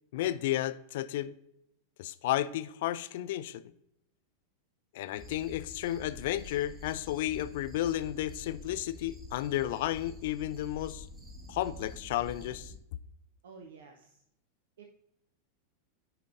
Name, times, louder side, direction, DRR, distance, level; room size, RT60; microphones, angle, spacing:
voice 1, 0.1-1.3 2.0-3.6 4.9-11.1 11.5-12.7, left 13 dB, 55° left, 0.3 m, -32 dB
sound 1, 5.2-12.8, left 2 dB, 10° right, 1.4 m, -47 dB
voice 2, 13.4-14.2 14.8-14.9, right 5 dB, 60° right, 0.7 m, -51 dB
9.9 x 5.1 x 2.5 m
figure-of-eight pair, 90°, 0 cm